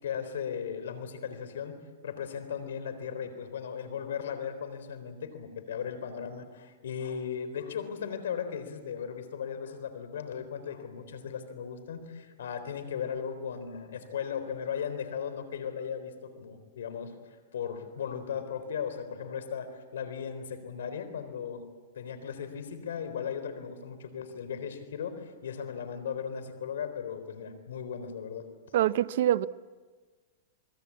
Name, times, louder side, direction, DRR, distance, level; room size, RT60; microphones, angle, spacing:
voice 1, 0.0-1.8 2.0-17.1 17.5-21.6 22.0-28.5, left 7 dB, 85° left, 3.8 m, -37 dB
voice 2, 28.7-29.5, right 12 dB, 65° right, 0.7 m, -24 dB
27.5 x 21.0 x 8.5 m
hypercardioid pair, 140°, 0 cm